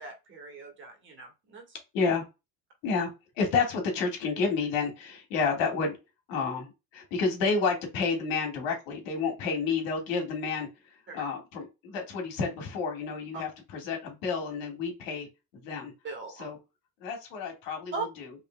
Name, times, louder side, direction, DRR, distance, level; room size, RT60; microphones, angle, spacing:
voice 1, 0.0-1.8 11.1-11.2 13.3-13.4 16.0-16.5 17.9-18.1, right 4 dB, 40° right, 2 dB, 1.6 m, -39 dB
voice 2, 1.9-2.2 2.8-3.1 3.4-6.0 6.3-10.7 11.1-15.3 15.6-15.9 16.4-16.6 17.0-18.3, left 4 dB, 80° left, 3 dB, 1.8 m, -30 dB
4.8 x 3.3 x 2.2 m, 0.25 s
cardioid pair, 140°, 32 cm